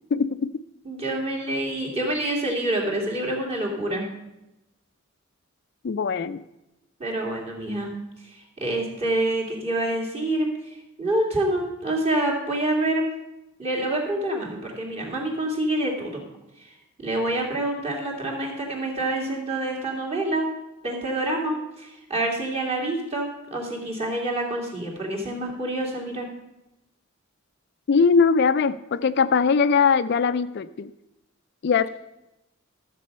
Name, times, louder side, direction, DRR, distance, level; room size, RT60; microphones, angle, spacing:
voice 1, 0.1-0.5 5.8-6.4 27.9-30.9 31.6-31.9, left 5 dB, 55° left, 12 dB, 0.4 m, -21 dB
voice 2, 0.8-4.1 7.0-7.9 8.2-13.1 13.6-16.3 16.6-20.5 20.8-26.3, right 1 dB, 30° right, -1 dB, 2.7 m, -27 dB
13.0 x 7.6 x 5.4 m, 0.92 s
head